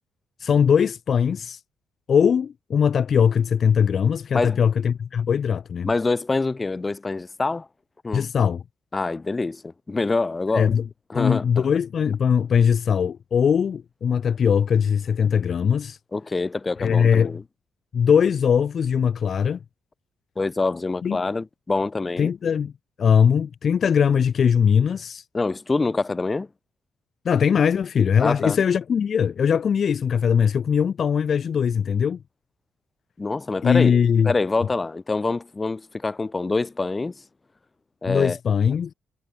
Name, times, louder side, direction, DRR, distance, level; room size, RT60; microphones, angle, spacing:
voice 1, 0.4-1.6 2.1-5.9 8.1-8.6 10.5-10.8 11.1-16.0 16.8-17.4 17.9-19.6 21.0-21.2 22.2-22.7 23.0-25.2 27.2-32.2 33.6-34.3 38.0-38.9, left 7 dB, 50° left, 1.2 m, -20 dB
voice 2, 5.8-7.7 8.0-8.3 8.9-10.7 11.1-11.7 16.1-17.4 20.4-22.3 25.3-26.5 28.2-28.6 33.2-34.0 34.2-37.1 38.0-38.4, left 3 dB, 25° left, 2.4 m, -25 dB
cardioid pair, 90°, 0 cm